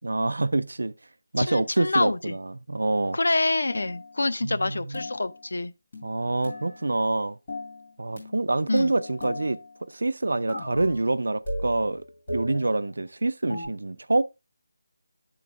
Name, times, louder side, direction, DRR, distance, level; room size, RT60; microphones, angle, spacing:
voice 1, 0.0-0.9 1.3-3.2 4.4-5.0 6.0-7.4 8.0-9.6 9.9-14.2, right 2 dB, 80° right, 0.5 m, -26 dB
voice 2, 1.4-2.4 3.1-5.7 8.7-8.9, left 2 dB, 65° left, 0.5 m, -26 dB
sound 1, 3.7-4.2 4.9-5.5 5.9-7.0 7.5-7.9 8.2-9.8 10.5-11.1 11.4-12.9 13.5-13.6, left 1 dB, 30° left, 4.8 m, -37 dB
9.3 x 3.8 x 3.5 m
figure-of-eight pair, 180°, 0 cm